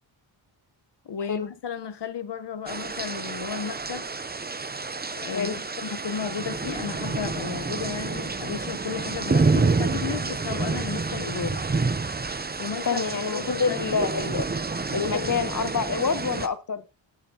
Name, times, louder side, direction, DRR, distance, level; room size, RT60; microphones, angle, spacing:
voice 1, 1.0-4.1 5.2-11.6 12.6-13.0 13.3-14.0 14.9-15.3, left 7 dB, 60° left, 1.2 m, -34 dB
sound 1, 2.7-16.5, right 4 dB, 20° right, 0.8 m, -28 dB
voice 2, 5.3-5.7 12.8-14.4 14.9-16.8, left 5 dB, 40° left, 1.2 m, -27 dB
17.5 x 8.4 x 2.9 m
wide cardioid pair, 90°, 47 cm